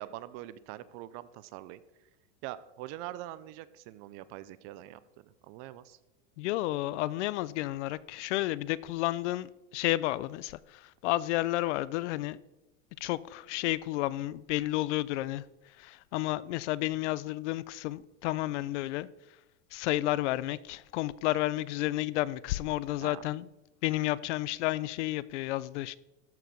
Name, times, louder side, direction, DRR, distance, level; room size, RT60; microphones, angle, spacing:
voice 1, 0.0-1.8 2.4-6.0 23.0-23.2, right 14 dB, 40° right, 0.5 m, -44 dB
voice 2, 6.4-12.4 13.0-15.4 15.8-19.1 19.7-23.5 23.8-26.0, left 17 dB, 70° left, 0.5 m, -31 dB
13.5 x 4.8 x 5.2 m
supercardioid pair, 150°, 37 cm